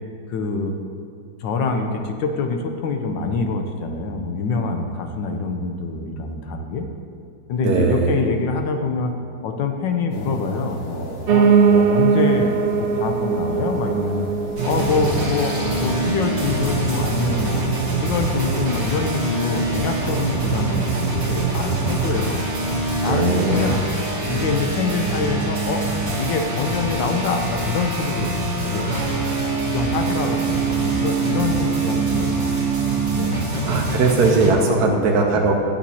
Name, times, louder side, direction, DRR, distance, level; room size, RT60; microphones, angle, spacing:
voice 1, 0.3-0.7 1.4-6.9 7.5-9.1 9.4-14.3 14.6-17.7 18.0-22.5 23.0-23.9 24.3-25.8 26.2-28.3 28.6-28.9 29.6-32.6 33.1-34.1 34.6-35.0 35.3-35.5, left 4 dB, 70° left, 5 dB, 1.4 m, -25 dB
voice 2, 7.6-8.2 21.5-22.0 23.1-23.8 28.7-28.8 31.8-32.2 33.6-35.5, right 4 dB, 65° right, 0 dB, 1.1 m, -20 dB
sound 1, 10.1-16.8, left 1 dB, 85° left, 0.5 m, -34 dB
Piano, 11.3-20.4 20.8-22.0 22.2-22.3 22.6-22.7 22.9-23.0 23.5-23.6, right 6 dB, 85° right, 1.5 m, -23 dB
sound 2, 14.6-34.5, right 3 dB, 35° right, 1.6 m, -24 dB
11.5 x 8.3 x 2.8 m, 2.2 s
omnidirectional pair, 2.3 m